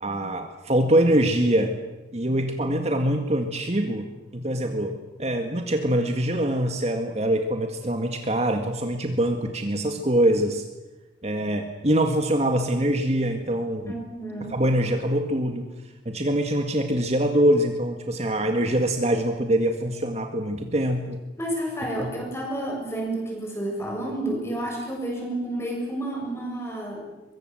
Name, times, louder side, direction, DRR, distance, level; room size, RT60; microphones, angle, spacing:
voice 1, 0.0-1.7 2.1-4.1 4.3-4.9 5.2-10.6 11.2-13.9 14.5-15.7 16.1-21.2 22.0-22.1, right 1 dB, 35° right, 5 dB, 1.9 m, -24 dB
voice 2, 13.9-14.6 21.4-27.0, right 1 dB, 15° left, 0 dB, 7.6 m, -30 dB
23.5 x 23.5 x 7.9 m, 1.1 s
head